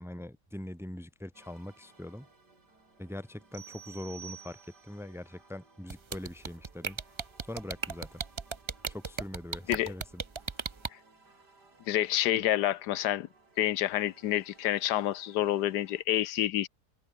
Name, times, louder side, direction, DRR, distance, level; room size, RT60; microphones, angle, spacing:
voice 1, 0.0-2.3 3.0-7.0 7.5-8.2 8.9-10.2, left 1 dB, ahead, 1.0 m, -42 dB
sound 1, 1.3-16.0, right 3 dB, 85° right, 5.2 m, -61 dB
sound 2, 3.5-5.1, right 10 dB, 65° right, 1.4 m, -49 dB
sound 3, 5.9-10.9, right 5 dB, 45° right, 0.3 m, -35 dB
voice 2, 11.9-13.3 13.6-16.7, left 13 dB, 80° left, 1.3 m, -28 dB
omnidirectional pair, 1.7 m